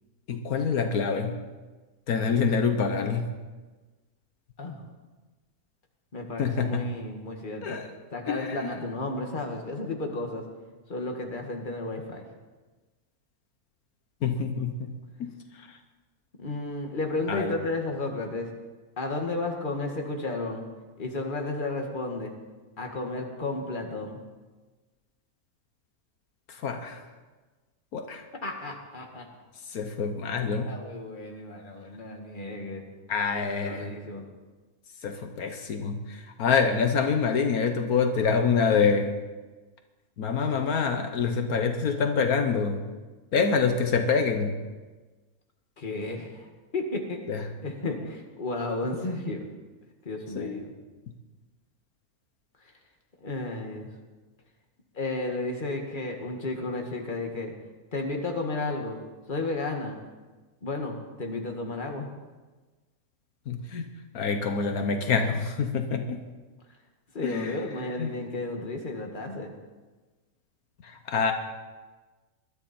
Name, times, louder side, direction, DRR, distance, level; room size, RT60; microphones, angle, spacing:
voice 1, 0.3-1.3 2.1-3.3 6.4-6.9 7.6-7.9 8.3-8.7 14.2-14.9 15.2-15.8 17.3-17.6 26.5-27.0 27.9-28.2 29.6-30.7 33.1-33.9 35.0-39.2 40.2-42.9 43.3-44.5 47.3-47.4 50.3-50.6 63.5-63.9 64.1-66.3 67.2-67.6 68.0-68.1 70.8-71.3, left 5 dB, 80° left, 6 dB, 1.5 m, -26 dB
voice 2, 6.1-7.8 8.1-10.4 10.9-12.2 16.4-18.5 19.0-20.7 21.0-22.3 22.8-24.2 28.3-29.3 30.7-32.8 33.6-34.3 45.8-47.2 47.6-49.4 50.1-50.7 52.6-52.7 53.2-53.9 54.9-57.5 57.9-59.0 59.3-60.0 60.6-62.1 67.1-69.5, left 2 dB, 35° left, 2 dB, 2.0 m, -33 dB
21.0 x 12.5 x 4.4 m, 1.3 s
omnidirectional pair, 1.6 m